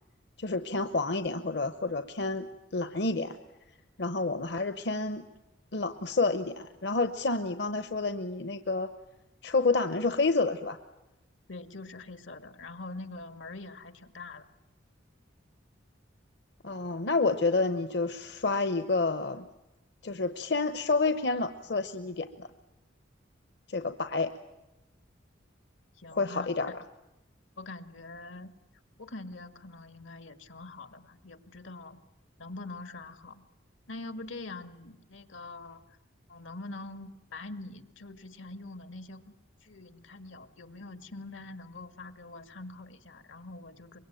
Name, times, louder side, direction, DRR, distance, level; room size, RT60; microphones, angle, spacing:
voice 1, 0.4-2.5 2.7-3.4 4.0-5.2 5.7-8.9 9.4-10.8 16.6-19.4 20.0-22.5 23.7-24.3 26.1-26.7, left 3 dB, 60° left, 10 dB, 0.9 m, -29 dB
voice 2, 11.5-14.5 26.0-26.7 27.6-28.5 29.0-32.0 32.4-33.4 33.9-35.8 36.3-39.3 39.6-44.0, left 2 dB, 80° left, 10 dB, 1.9 m, -44 dB
24.5 x 22.5 x 9.1 m, 0.98 s
head